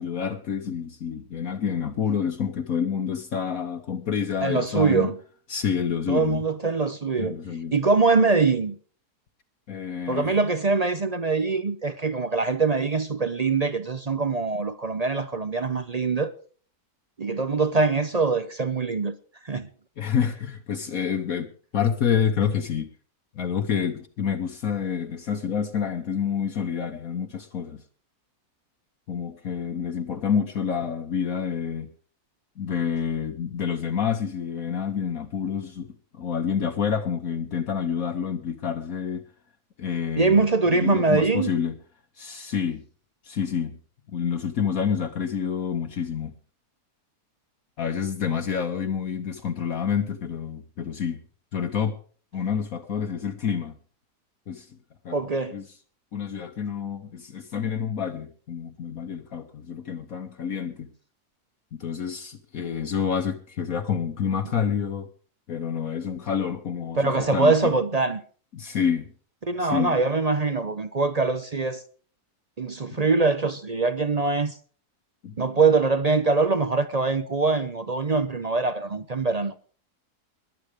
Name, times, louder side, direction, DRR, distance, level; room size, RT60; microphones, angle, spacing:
voice 1, 0.0-5.1 5.5-6.4 7.2-7.7 9.7-10.3 20.0-22.9 23.3-27.8 29.1-31.9 32.6-39.2 39.8-41.7 42.2-42.8 43.2-43.8 44.1-46.3 47.8-51.2 51.5-52.0 52.3-53.8 54.5-54.7 55.0-55.2 55.5-55.7 56.1-60.9 61.7-65.1 65.5-67.7 68.5-69.0 69.6-69.9 72.9-73.0 75.2-75.4, left 7 dB, 65° left, 1.5 m, -28 dB
voice 2, 4.4-5.2 6.1-7.3 7.7-8.8 10.1-16.3 17.2-19.2 19.4-19.7 40.2-41.5 55.1-55.6 67.0-68.2 69.5-71.8 72.6-74.6 75.4-79.5, right 4 dB, 40° right, 0.5 m, -23 dB
21.5 x 8.3 x 5.0 m
omnidirectional pair, 1.7 m